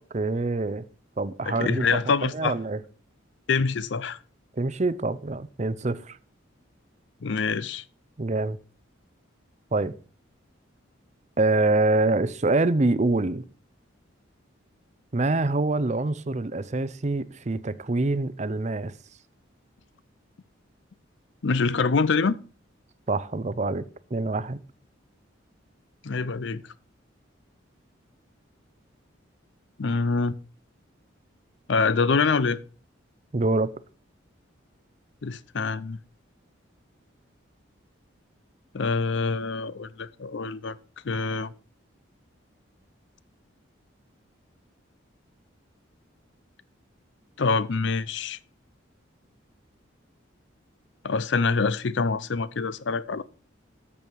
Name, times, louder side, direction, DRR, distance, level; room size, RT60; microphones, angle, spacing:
voice 1, 0.1-0.8 1.2-2.8 4.5-6.2 8.2-8.6 9.7-9.9 11.4-13.4 15.1-18.9 23.1-23.8 24.1-24.6 33.3-33.7, right 2 dB, 35° right, 0.6 m, -25 dB
voice 2, 1.5-2.5 3.5-4.2 7.2-7.8 21.4-22.4 26.0-26.6 29.8-30.4 31.7-32.6 35.2-36.0 38.7-40.8 41.0-41.5 47.4-48.4 51.0-53.2, left 4 dB, 65° left, 0.5 m, -25 dB
12.5 x 7.1 x 4.6 m
head